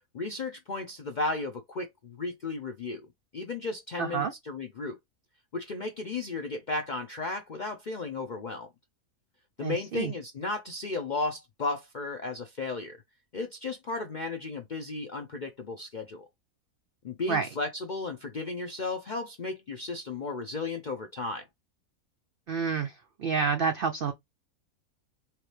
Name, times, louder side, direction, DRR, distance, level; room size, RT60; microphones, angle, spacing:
voice 1, 0.1-3.1 3.3-5.0 5.5-8.7 9.6-13.0 13.3-16.3 17.0-21.4, left 3 dB, 65° left, 0.4 m, -34 dB
voice 2, 4.0-4.3 9.6-10.1 17.3-17.5 22.5-24.1, right 6 dB, 85° right, 0.4 m, -29 dB
3.8 x 2.9 x 3.2 m
omnidirectional pair, 1.5 m